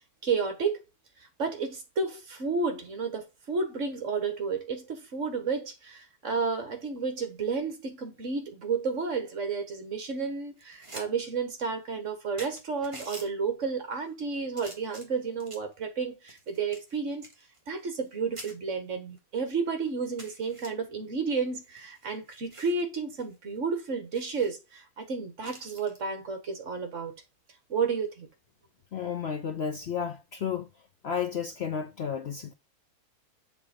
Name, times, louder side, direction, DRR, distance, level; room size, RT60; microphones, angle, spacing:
voice 1, 0.2-0.8 1.4-17.3 17.7-27.1 27.7-28.3, right 5 dB, 55° right, 1.6 m, -31 dB
sound 1, 10.6-11.1 11.4-11.5 12.1-12.2 12.4-13.3 14.0-14.2 14.6-15.7 16.3-18.1 18.4-18.5 19.2-19.3 19.6-19.7 20.2-20.7 21.5-22.8 23.2-23.3 23.6-23.7 24.1-24.5 25.4-26.0 27.7-28.0, right 1 dB, 20° right, 1.5 m, -47 dB
voice 2, 28.9-30.7 31.0-32.5, left 7 dB, 55° left, 0.8 m, -32 dB
6.9 x 3.6 x 4.9 m
omnidirectional pair, 1.6 m